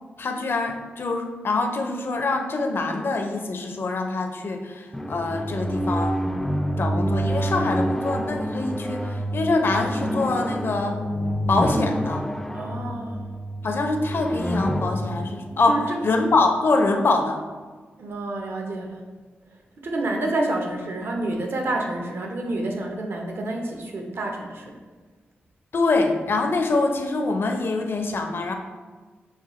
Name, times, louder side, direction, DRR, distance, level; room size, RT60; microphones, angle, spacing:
voice 1, 0.2-6.2 6.8-11.0 11.5-12.3 13.6-17.4 25.7-28.5, left 3 dB, 60° left, 4 dB, 0.5 m, -24 dB
sound 1, 4.9-16.6, equal, 5° left, 0.3 m, -27 dB
voice 2, 12.5-13.2 15.7-16.0 18.0-19.0 19.8-24.8, right 2 dB, 65° right, 1 dB, 0.7 m, -28 dB
6.4 x 2.3 x 3.0 m, 1.4 s
cardioid pair, 60°, 4 cm